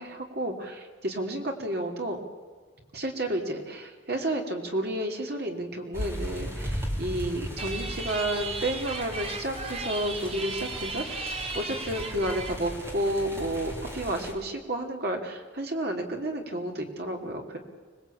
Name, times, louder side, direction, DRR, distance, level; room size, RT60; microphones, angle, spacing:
voice 1, 0.0-2.2 2.9-17.6, right 1 dB, 55° right, 2 dB, 3.2 m, -31 dB
sound 1, 5.9-14.3, equal, 15° right, 3.6 m, -37 dB
sound 2, 7.6-12.6, right 3 dB, 30° right, 2.3 m, -36 dB
25.5 x 20.0 x 8.7 m, 1.4 s
head